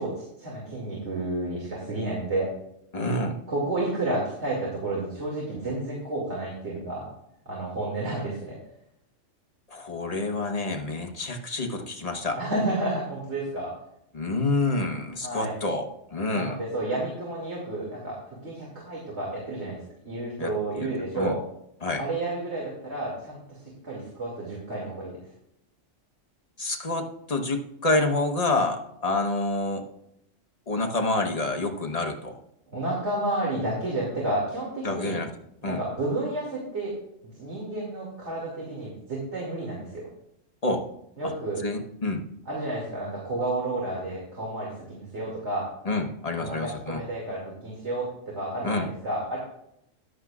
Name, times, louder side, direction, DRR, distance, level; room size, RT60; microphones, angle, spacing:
voice 1, 0.0-2.5 3.5-7.1 7.5-8.6 12.4-13.7 15.2-15.5 16.3-18.2 18.4-21.4 22.0-23.6 23.8-25.1 32.7-35.2 35.6-36.9 37.2-40.1 41.2-41.6 42.5-45.7 46.4-49.4, right 2 dB, 55° right, -4 dB, 2.8 m, -31 dB
voice 2, 2.9-3.4 9.7-12.4 14.1-16.6 20.4-20.9 21.1-21.3 21.8-22.0 26.6-29.8 30.7-32.4 34.8-35.3 35.6-35.8 40.6-40.8 41.2-41.3 41.6-42.2 45.8-47.0 48.6-48.9, left 2 dB, 30° left, 3 dB, 1.1 m, -28 dB
14.0 x 10.5 x 2.4 m, 0.78 s
omnidirectional pair, 1.4 m